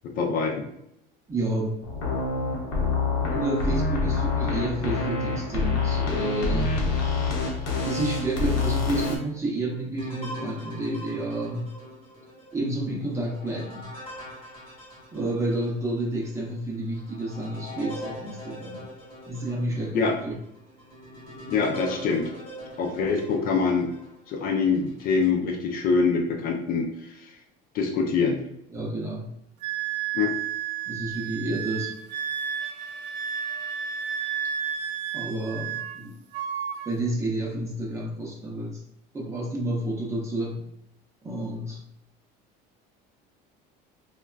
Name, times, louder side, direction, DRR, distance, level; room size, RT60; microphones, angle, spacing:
voice 1, 0.2-0.7 19.9-20.2 21.5-22.3 22.8-23.9 24.3-26.9 27.7-28.4 30.1-30.3, left 5 dB, 50° left, 3 dB, 0.4 m, -24 dB
voice 2, 1.3-2.1 3.3-6.8 7.8-11.7 12.5-13.9 15.1-18.9 19.3-20.3 28.7-29.3 30.9-32.0 35.1-36.2 36.9-38.8 39.1-40.7 41.2-41.8, right 1 dB, 15° right, -3 dB, 0.6 m, -30 dB
sound 1, 1.8-9.2, left 3 dB, 80° left, 0.8 m, -26 dB
sound 2, 10.0-15.7 16.3-16.4 16.9-24.1 24.7-25.3, equal, 30° left, 1.2 m, -42 dB
Wind instrument woodwind instrument, 29.6-36.0 36.3-37.0, right 8 dB, 65° right, 0.4 m, -32 dB
3.4 x 2.2 x 2.2 m, 0.78 s
cardioid pair, 155°, 19 cm